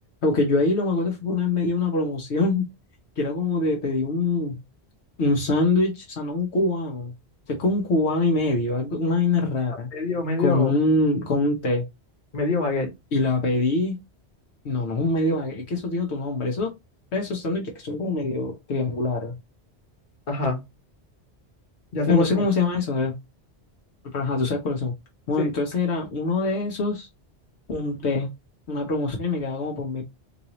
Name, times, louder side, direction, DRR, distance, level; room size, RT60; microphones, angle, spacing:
voice 1, 0.2-2.7 3.2-4.6 5.2-7.1 7.5-9.9 10.4-11.9 13.1-14.0 14.6-16.7 17.1-19.4 22.0-23.1 24.1-24.9 25.3-27.1 27.7-28.3 28.7-30.0, left 3 dB, 75° left, 1.1 m, -24 dB
voice 2, 9.9-10.7 12.3-12.9 20.3-20.6 21.9-22.4 25.4-25.5, left 3 dB, 50° left, 1.2 m, -25 dB
4.0 x 2.6 x 2.9 m
omnidirectional pair, 1.1 m